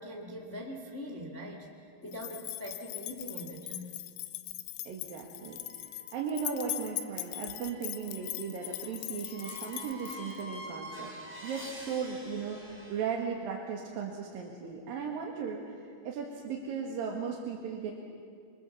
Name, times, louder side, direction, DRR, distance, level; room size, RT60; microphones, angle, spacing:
voice 1, 0.0-3.9, equal, 70° left, 0 dB, 0.7 m, -42 dB
sound 1, 2.1-10.4, left 16 dB, 85° left, 3.4 m, -40 dB
voice 2, 4.8-5.6 6.1-11.1 11.4-18.0, right 6 dB, 60° right, -1 dB, 2.9 m, -37 dB
sound 2, 5.3-13.1, right 1 dB, 5° right, 4.2 m, -48 dB
25.5 x 25.0 x 7.2 m, 2.3 s
omnidirectional pair, 5.7 m